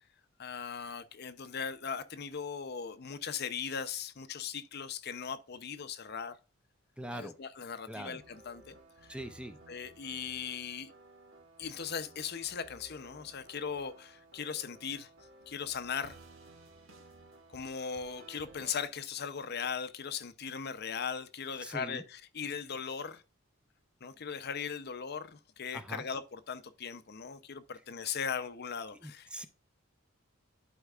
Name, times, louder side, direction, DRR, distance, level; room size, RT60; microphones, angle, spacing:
voice 1, 0.4-6.3 7.1-8.8 9.7-10.9 11.6-15.1 15.5-16.2 17.5-23.2 24.0-29.5, left 6 dB, 50° left, 0.6 m, -39 dB
voice 2, 7.0-7.4 7.9-8.2 9.1-9.6 21.6-22.0 25.7-26.0 29.0-29.5, right 1 dB, 5° right, 0.6 m, -42 dB
sound 1, 8.2-18.7, right 2 dB, 75° right, 1.7 m, -56 dB
11.5 x 4.6 x 2.4 m
head